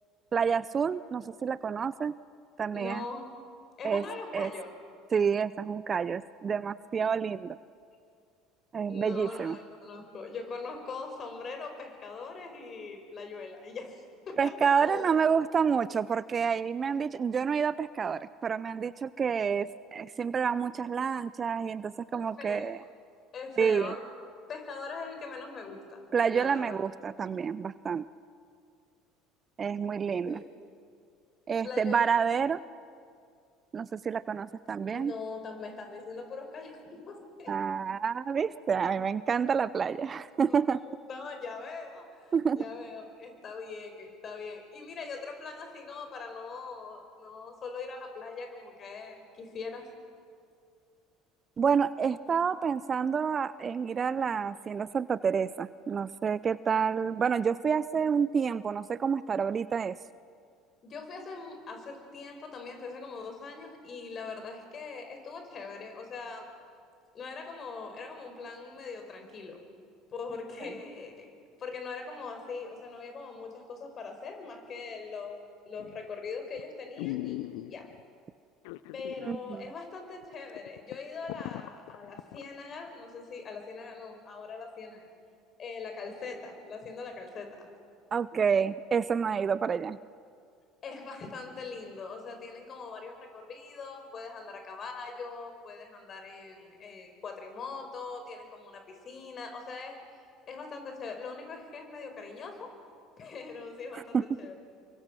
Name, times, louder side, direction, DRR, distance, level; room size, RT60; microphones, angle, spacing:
voice 1, 0.3-2.1 2.6-3.0 3.8-4.1 4.3-4.5 5.1-7.6 8.7-9.6 14.4-22.8 23.6-23.9 26.1-28.0 29.6-30.4 31.5-32.6 33.7-35.1 37.5-40.8 42.3-42.6 51.6-60.0 79.2-79.7 88.1-90.0 104.1-104.2, right 6 dB, 35° right, 18 dB, 0.6 m, -28 dB
voice 2, 2.7-3.3 3.8-4.7 8.9-14.0 14.3-14.5 14.8-15.1 22.1-22.7 23.3-24.0 24.5-26.0 26.3-26.8 30.2-30.5 31.6-32.1 34.9-37.5 40.5-49.9 60.8-66.5 67.1-69.6 70.1-71.3 71.6-77.9 78.9-85.1 85.6-87.7 90.8-100.0 100.4-102.7 103.2-104.5, left 4 dB, 40° left, 5 dB, 5.1 m, -41 dB
sound 1, 75.8-76.1 76.6-76.7 77.0-78.0 78.6-79.3 79.6-79.7 80.2-80.3 80.6-82.4 82.9-83.0, left 17 dB, 70° left, 0.6 m, -39 dB
28.5 x 23.5 x 6.3 m, 2.3 s
hypercardioid pair, 65°, 0 cm